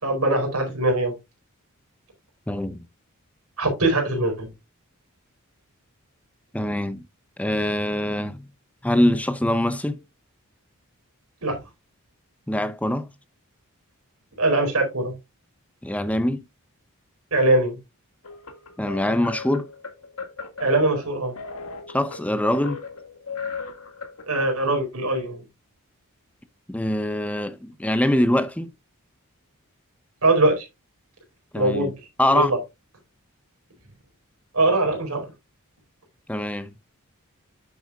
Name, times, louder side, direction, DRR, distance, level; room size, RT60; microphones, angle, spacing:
voice 1, 0.0-1.1 3.6-4.5 11.4-11.6 14.4-15.1 17.3-17.8 20.6-21.3 24.3-25.4 30.2-30.7 31.5-31.9 32.3-32.6 34.5-35.3, right 2 dB, 90° right, 4.4 m, -21 dB
voice 2, 2.5-2.8 6.5-7.0 7.4-8.4 8.8-10.0 12.5-13.1 15.8-16.4 18.8-19.7 21.9-22.8 26.7-28.7 31.5-31.9 32.2-32.5 36.3-36.7, left 1 dB, 5° left, 0.5 m, -23 dB
sound 1, 18.2-24.4, left 4 dB, 70° left, 2.0 m, -37 dB
9.6 x 7.5 x 2.4 m
head